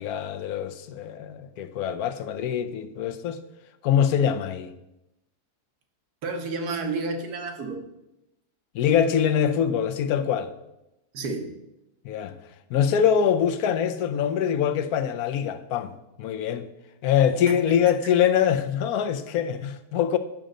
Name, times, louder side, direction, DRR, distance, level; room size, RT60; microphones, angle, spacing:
voice 1, 0.0-3.4 3.8-4.7 8.7-10.5 12.0-12.4 12.7-15.9 16.2-16.7 17.0-20.2, left 8 dB, 75° left, 1.1 m, -24 dB
voice 2, 6.2-7.8 11.1-11.5 17.5-17.7, right 3 dB, 75° right, 1.5 m, -30 dB
9.1 x 6.3 x 3.8 m
omnidirectional pair, 1.7 m